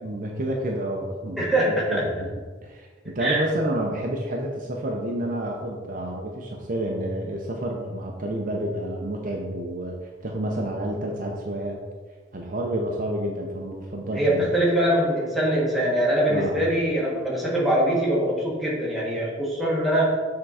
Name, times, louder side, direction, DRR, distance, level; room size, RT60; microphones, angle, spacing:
voice 1, 0.0-2.3 2.6-10.0 10.2-11.8 12.3-14.5 16.3-16.6, right 1 dB, 45° right, 0 dB, 0.7 m, -29 dB
voice 2, 1.4-2.0 3.2-3.4 14.2-20.2, right 1 dB, ahead, -6 dB, 1.4 m, -23 dB
6.8 x 3.8 x 4.3 m, 1.5 s
head